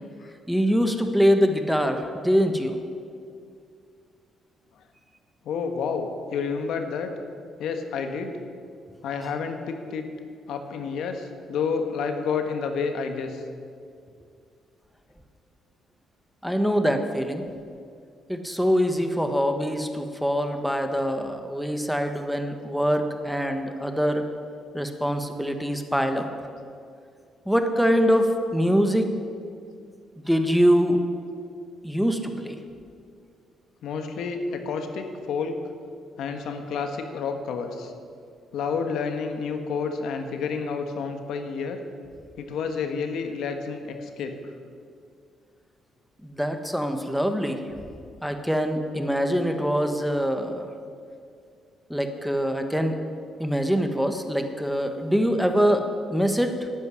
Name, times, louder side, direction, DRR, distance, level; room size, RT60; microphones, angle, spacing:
voice 1, 0.5-2.7 16.4-17.4 18.3-24.2 24.7-26.3 27.5-29.1 30.3-31.0 31.8-32.6 46.2-47.6 48.2-50.7 51.9-53.0 53.4-56.7, equal, ahead, 6 dB, 1.4 m, -24 dB
voice 2, 5.4-7.1 7.6-8.3 9.0-10.1 10.5-13.4 33.8-35.6 36.2-37.9 38.5-41.8 42.4-44.3, left 5 dB, 80° left, 6 dB, 1.5 m, -29 dB
12.0 x 9.2 x 9.8 m, 2.3 s
cardioid pair, 90°, 0 cm